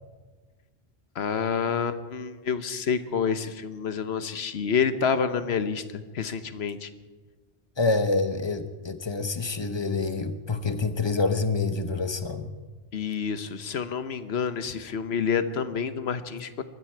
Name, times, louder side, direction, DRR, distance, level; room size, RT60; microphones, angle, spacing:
voice 1, 1.2-5.8 6.1-6.9 12.9-16.6, left 6 dB, 75° left, 11 dB, 1.2 m, -28 dB
voice 2, 7.8-12.5, left 3 dB, 25° left, 10 dB, 0.9 m, -27 dB
23.0 x 13.5 x 4.5 m, 1.3 s
omnidirectional pair, 1.1 m